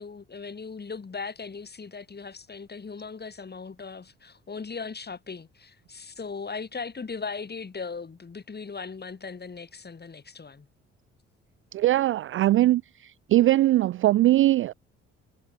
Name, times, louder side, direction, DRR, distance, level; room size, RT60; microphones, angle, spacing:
voice 1, 0.0-10.7, left 5 dB, 25° left, 2.6 m, -38 dB
voice 2, 11.7-12.8 13.3-14.7, right 15 dB, 35° right, 0.4 m, -20 dB
figure-of-eight pair, 45°, 37 cm